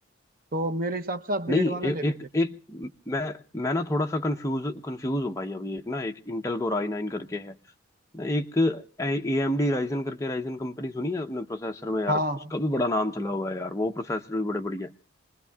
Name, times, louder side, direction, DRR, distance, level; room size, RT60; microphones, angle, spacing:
voice 1, 0.5-2.1 12.1-12.5, right 1 dB, 45° right, 0.7 m, -29 dB
voice 2, 1.5-7.6 8.1-12.2 12.5-14.9, left 1 dB, 15° left, 0.8 m, -28 dB
28.5 x 20.5 x 2.3 m
head